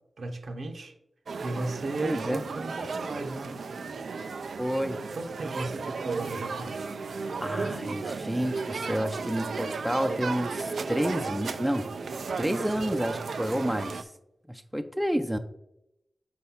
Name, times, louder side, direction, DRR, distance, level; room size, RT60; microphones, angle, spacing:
voice 1, 0.2-0.9 1.4-3.6 5.2-7.0, right 2 dB, 75° right, 0.9 m, -35 dB
sound 1, 1.3-14.0, right 4 dB, 90° right, 0.4 m, -34 dB
voice 2, 2.0-2.4 4.6-5.0 7.4-11.9 12.4-14.1 14.5-15.4, equal, 5° right, 0.5 m, -30 dB
4.6 x 4.2 x 5.7 m
wide cardioid pair, 70°, 0 cm